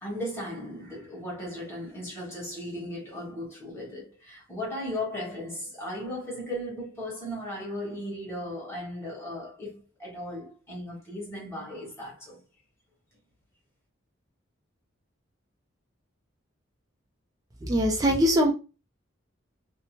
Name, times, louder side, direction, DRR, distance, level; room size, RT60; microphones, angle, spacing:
voice 1, 0.0-12.4, left 1 dB, 15° left, 1.2 m, -36 dB
voice 2, 17.6-18.5, equal, 20° right, 0.4 m, -22 dB
2.7 x 2.1 x 2.9 m
head